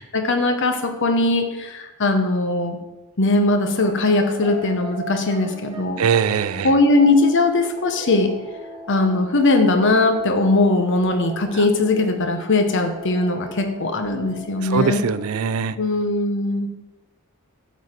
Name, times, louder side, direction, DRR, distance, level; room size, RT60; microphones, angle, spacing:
voice 1, 0.0-2.8 3.2-6.0 6.6-8.3 8.9-15.0 15.8-16.7, left 2 dB, 60° left, 6 dB, 1.0 m, -20 dB
sound 1, 3.8-15.7, right 2 dB, 20° right, 1.2 m, -39 dB
voice 2, 6.0-6.7 14.6-15.8, right 6 dB, 75° right, 15 dB, 0.4 m, -21 dB
8.3 x 4.0 x 6.6 m, 1.1 s
head